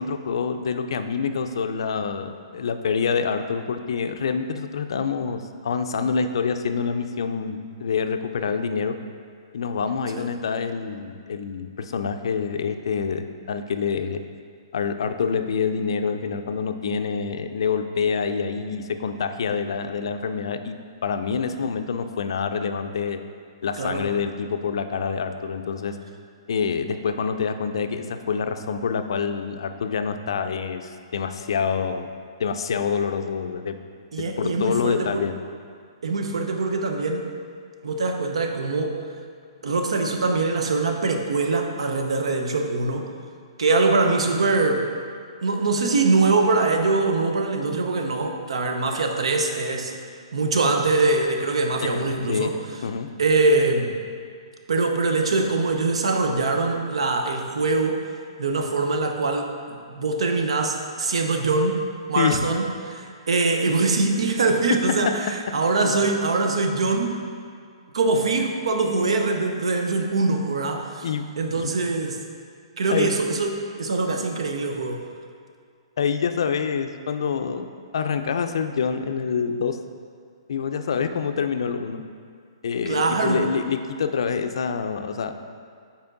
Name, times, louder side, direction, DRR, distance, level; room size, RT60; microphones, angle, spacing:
voice 1, 0.0-9.0 9.5-14.2 14.7-23.2 23.6-26.0 26.5-32.1 32.4-33.8 34.4-35.3 51.8-52.0 52.3-52.5 52.8-53.1 62.2-62.5 64.7-64.8 71.0-71.3 71.6-71.7 72.9-73.2 76.0-77.7 77.9-79.8 80.5-82.0 82.6-85.3, left 6 dB, 60° left, 8 dB, 0.4 m, -26 dB
voice 2, 34.1-35.3 36.0-37.3 37.8-39.0 39.6-43.1 43.6-44.8 45.4-50.0 50.3-52.5 53.2-54.0 54.7-58.0 58.4-62.7 62.9-67.2 67.9-71.1 71.4-72.2 72.8-75.0 82.9-83.5, right 3 dB, 90° right, 4 dB, 0.7 m, -23 dB
5.8 x 4.3 x 3.9 m, 2.2 s
hypercardioid pair, 175°, 3 cm